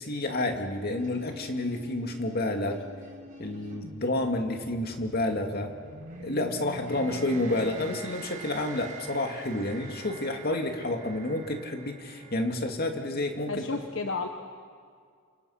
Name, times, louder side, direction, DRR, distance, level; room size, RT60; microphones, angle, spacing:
voice 1, 0.0-2.8 3.4-5.7 6.2-13.6, left 1 dB, 50° left, 3 dB, 2.5 m, -30 dB
sound 1, 1.0-12.5, right 2 dB, 40° right, 4.7 m, -45 dB
voice 2, 13.5-14.3, left 3 dB, 70° left, 5 dB, 1.3 m, -32 dB
29.0 x 27.0 x 5.9 m, 2.1 s
head